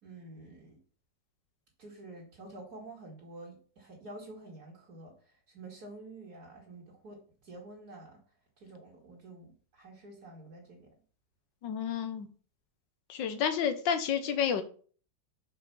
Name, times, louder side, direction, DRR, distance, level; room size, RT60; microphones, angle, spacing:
voice 1, 0.0-0.8 1.8-8.2 8.6-10.9, right 2 dB, 55° right, -4 dB, 2.4 m, -49 dB
voice 2, 11.6-12.3 13.1-14.6, left 8 dB, 90° left, 9 dB, 1.6 m, -30 dB
5.6 x 4.8 x 6.1 m, 0.42 s
omnidirectional pair, 1.9 m